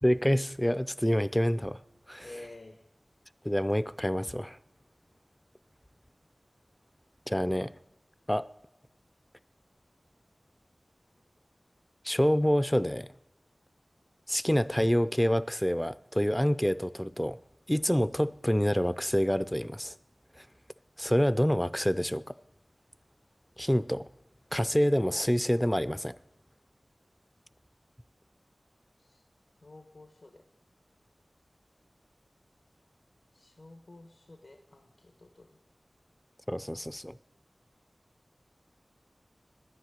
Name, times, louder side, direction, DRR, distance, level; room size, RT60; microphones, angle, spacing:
voice 1, 0.0-1.8 2.1-2.3 3.4-4.6 7.3-7.7 8.3-8.5 12.0-13.1 14.3-17.4 17.7-19.9 21.0-22.2 23.6-24.1 24.5-26.1 36.5-37.1, equal, 10° left, 0.4 m, -27 dB
voice 2, 2.2-2.8 29.0-29.2 29.6-30.4 33.3-35.5, left 2 dB, 75° left, 1.2 m, -50 dB
10.0 x 9.4 x 9.8 m
wide cardioid pair, 70°, 0 cm